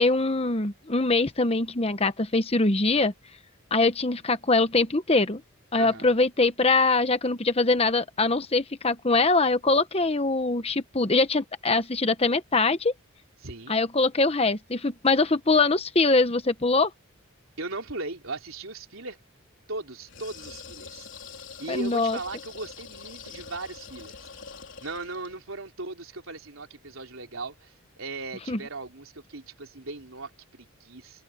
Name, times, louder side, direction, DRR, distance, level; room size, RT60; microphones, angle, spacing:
voice 1, 0.0-3.1 3.7-5.4 5.7-12.9 13.7-16.9 21.7-22.2 28.5-28.6, left 3 dB, 25° left, 1.0 m, -23 dB
voice 2, 5.7-6.2 13.4-13.8 17.6-19.2 19.7-21.1 21.6-24.2 24.8-31.2, right 3 dB, 70° right, 3.6 m, -38 dB
sound 1, 20.0-25.4, left 6 dB, 55° left, 4.6 m, -44 dB
head